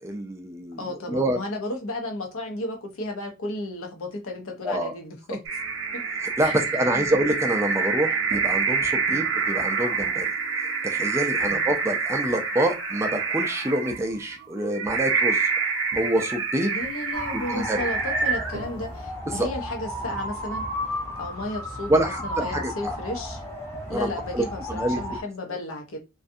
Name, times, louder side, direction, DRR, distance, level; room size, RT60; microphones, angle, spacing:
voice 1, 0.0-1.4 4.6-4.9 6.2-10.3 10.8-15.5 15.9-16.7 17.3-17.8 19.3-19.5 21.9-22.7 23.9-24.4 24.7-25.0, right 1 dB, 15° right, 0.3 m, -26 dB
voice 2, 0.8-5.4 6.4-6.5 6.9-7.1 9.1-9.3 11.4-11.6 16.6-20.6 21.2-23.4 23.9-26.0, left 2 dB, 75° left, 0.6 m, -33 dB
sound 1, 5.5-19.0, right 5 dB, 60° right, 0.5 m, -27 dB
sound 2, 17.1-25.2, equal, 15° left, 0.7 m, -34 dB
2.5 x 2.2 x 2.6 m
head